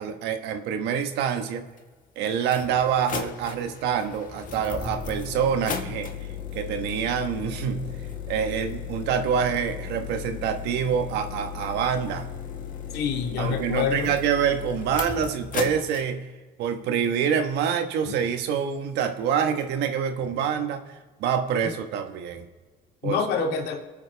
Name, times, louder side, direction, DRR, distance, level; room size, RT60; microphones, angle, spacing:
voice 1, 0.0-1.7 2.2-6.1 6.5-7.9 8.3-12.3 13.4-16.3 16.6-20.8 21.2-22.4 23.0-23.2, right 7 dB, 85° right, 6 dB, 1.4 m, -26 dB
sound 1, 1.8-1.9 2.4-16.0, left 7 dB, 55° left, 1.6 m, -35 dB
voice 2, 12.9-14.1 18.1-18.2 20.2-20.3 23.0-23.8, left 6 dB, 75° left, 2 dB, 2.2 m, -27 dB
25.5 x 9.2 x 3.5 m, 1.3 s
cardioid pair, 110°, 17 cm